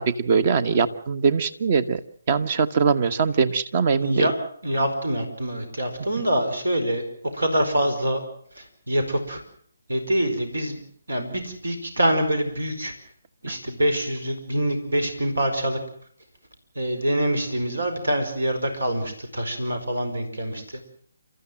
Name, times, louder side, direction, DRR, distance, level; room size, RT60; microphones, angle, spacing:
voice 1, 0.0-2.0 2.3-4.3, right 5 dB, 40° right, 15 dB, 1.3 m, -22 dB
voice 2, 4.0-4.3 4.6-7.0 7.3-8.2 8.6-9.4 9.9-10.8 11.1-12.9 13.4-15.8 16.8-20.6, right 1 dB, 75° right, 8 dB, 4.8 m, -25 dB
30.0 x 14.0 x 7.6 m, 0.63 s
figure-of-eight pair, 145°, 0 cm